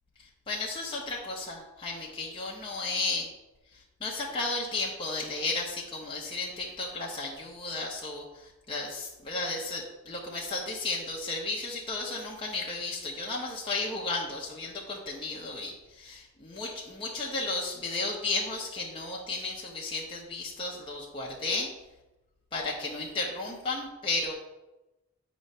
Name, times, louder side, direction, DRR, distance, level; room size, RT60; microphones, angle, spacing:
voice 1, 0.5-3.3 4.0-21.7 22.5-24.3, left 3 dB, 25° left, -4 dB, 0.8 m, -34 dB
7.8 x 3.1 x 5.4 m, 1.0 s
head